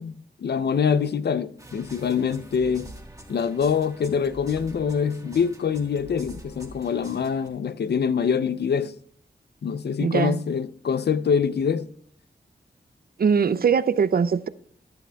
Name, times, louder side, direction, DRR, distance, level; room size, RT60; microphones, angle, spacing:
voice 1, 0.0-2.9 3.3-8.9 9.6-11.9, left 6 dB, 65° left, 0.5 m, -25 dB
sound 1, 1.6-7.5, right 1 dB, 20° right, 1.7 m, -45 dB
voice 2, 10.0-10.4 13.2-14.5, right 6 dB, 55° right, 0.4 m, -21 dB
14.5 x 11.0 x 2.3 m
wide cardioid pair, 75°, 18 cm